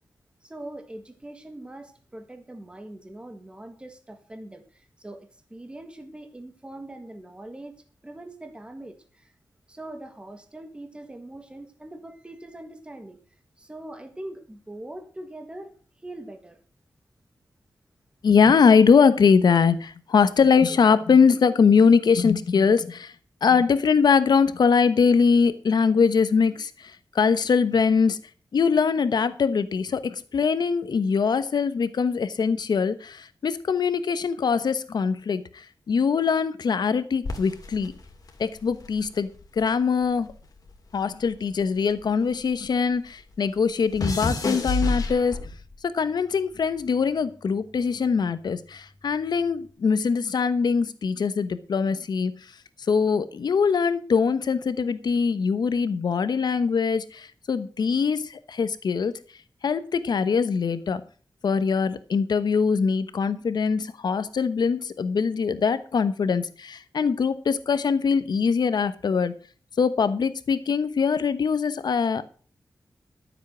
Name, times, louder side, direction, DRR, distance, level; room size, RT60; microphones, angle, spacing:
voice 1, 0.4-7.8 8.0-9.3 9.7-13.2 13.6-16.6, right 1 dB, 15° right, 7 dB, 1.7 m, -42 dB
voice 2, 18.2-23.1 23.4-28.2 28.5-37.9 38.4-40.3 40.9-45.4 45.8-52.3 52.9-59.1 59.6-61.0 61.4-69.3 69.8-72.4, left 5 dB, 70° left, 13 dB, 1.1 m, -22 dB
sound 1, 37.2-39.7 40.0-42.7 42.9-45.8 46.5-46.9, left 2 dB, 55° left, 2.5 m, -31 dB
13.0 x 7.4 x 6.3 m, 0.40 s
wide cardioid pair, 165°, 7 cm